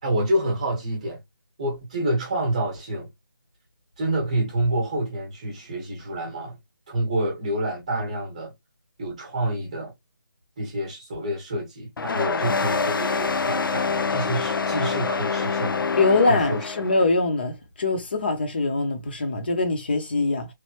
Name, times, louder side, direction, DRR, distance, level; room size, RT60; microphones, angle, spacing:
voice 1, 0.0-1.2 1.6-3.1 4.0-6.6 6.9-8.5 9.0-9.9 10.6-16.0 16.3-16.6, right 1 dB, 20° right, 0.9 m, -28 dB
sound 1, 12.0-17.1, left 4 dB, 80° left, 0.4 m, -26 dB
voice 2, 15.9-20.5, left 3 dB, 30° left, 0.6 m, -23 dB
3.2 x 2.1 x 3.0 m
figure-of-eight pair, 175°, 11 cm